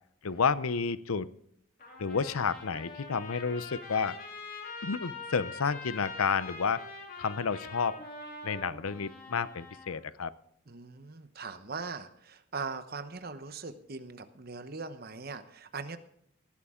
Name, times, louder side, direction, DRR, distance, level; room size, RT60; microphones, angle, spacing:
voice 1, 0.2-1.3 2.0-4.2 4.8-6.8 7.2-8.0 8.4-10.3, left 5 dB, 85° left, 16 dB, 0.7 m, -30 dB
Trumpet, 1.8-10.0, left 3 dB, 45° left, 3.0 m, -44 dB
voice 2, 10.7-16.0, right 4 dB, 45° right, 10 dB, 1.0 m, -40 dB
18.5 x 11.5 x 3.8 m, 0.70 s
head